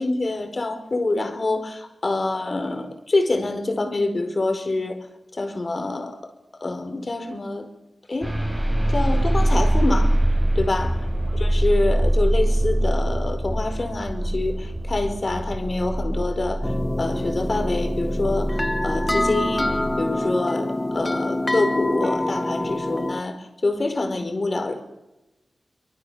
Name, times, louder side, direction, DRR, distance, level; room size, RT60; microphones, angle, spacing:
voice 1, 0.0-5.0 5.3-6.3 6.6-7.7 8.1-8.3 8.9-10.2 10.5-10.9 11.3-16.7 17.0-24.7, left 2 dB, 40° left, 6 dB, 4.9 m, -26 dB
sound 1, 8.2-19.9, right 1 dB, 10° right, 5.9 m, -23 dB
sound 2, 16.6-23.2, left 1 dB, 15° left, 1.1 m, -26 dB
26.5 x 25.5 x 7.3 m, 0.96 s
wide cardioid pair, 120°, 0 cm